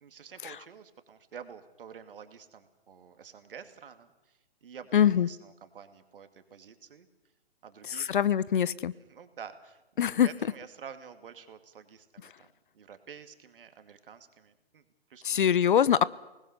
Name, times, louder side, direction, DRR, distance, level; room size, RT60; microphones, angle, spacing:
voice 1, 0.0-7.1 7.6-8.1 9.0-9.8 10.2-12.5 12.7-14.8 15.1-15.4, right 7 dB, 55° right, 8 dB, 2.5 m, -49 dB
voice 2, 4.9-5.3 7.9-8.9 10.0-10.3 15.2-16.0, left 9 dB, 55° left, 20 dB, 0.8 m, -23 dB
28.5 x 20.0 x 6.7 m, 0.99 s
hypercardioid pair, 140°, 32 cm